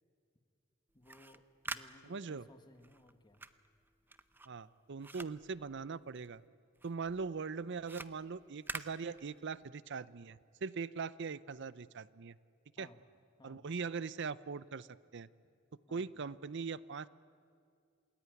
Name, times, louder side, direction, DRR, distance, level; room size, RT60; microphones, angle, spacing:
voice 1, 0.9-3.5 12.8-13.1 13.4-13.7 15.9-16.1, left 1 dB, 20° left, 6 dB, 1.6 m, -61 dB
sound 1, 0.9-6.4 6.8-9.7, right 2 dB, 10° right, 0.7 m, -48 dB
voice 2, 2.0-2.4 4.5-6.4 6.8-12.4 12.8-12.9 13.4-14.9 15.1-15.3 15.9-17.1, right 5 dB, 60° right, 17 dB, 0.6 m, -41 dB
28.5 x 19.5 x 9.4 m, 2.2 s
head